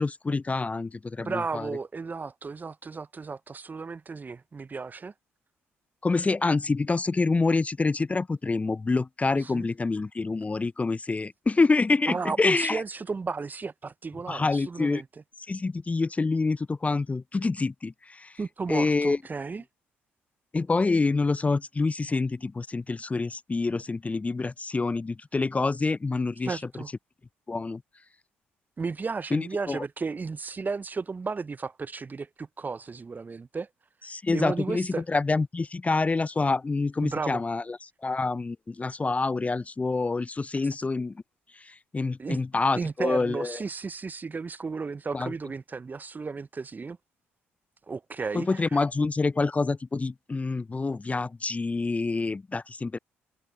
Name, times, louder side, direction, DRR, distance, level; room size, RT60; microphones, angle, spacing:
voice 1, 0.0-1.7 6.0-12.8 14.3-15.0 15.5-18.4 18.7-19.2 20.5-26.6 27.5-27.8 29.3-29.8 34.1-37.8 38.0-41.1 41.5-43.6 45.1-45.3 48.3-53.0, left 3 dB, 25° left, 0.6 m, -27 dB
voice 2, 1.2-5.1 9.4-9.7 12.1-15.1 18.4-19.6 26.4-26.9 28.8-33.7 34.3-35.0 37.0-37.4 42.2-42.4 42.7-47.0 47.9-48.6, right 4 dB, 30° right, 0.8 m, -34 dB
hypercardioid pair, 45°, 6 cm